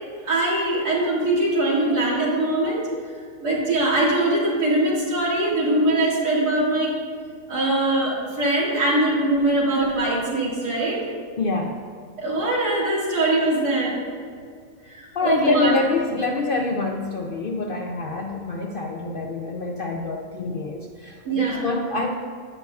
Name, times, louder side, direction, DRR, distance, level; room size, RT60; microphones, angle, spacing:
voice 1, 0.3-2.8 3.4-6.9 7.5-11.0 12.2-13.9 14.9-15.0 15.2-15.7 21.3-21.6, right 2 dB, 75° right, -6 dB, 2.5 m, -22 dB
voice 2, 11.4-11.8 15.2-22.1, left 3 dB, 80° left, 1 dB, 0.4 m, -26 dB
11.0 x 8.3 x 2.3 m, 2.1 s
omnidirectional pair, 1.6 m